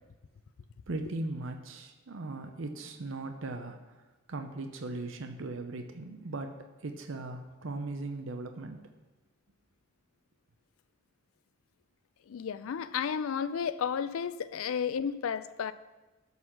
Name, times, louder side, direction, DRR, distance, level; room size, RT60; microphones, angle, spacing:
voice 1, 0.9-4.0 4.3-6.6 6.8-8.8, right 2 dB, 70° right, 0.7 m, -38 dB
voice 2, 12.3-15.7, left 7 dB, 90° left, 0.4 m, -32 dB
12.5 x 4.1 x 5.8 m
head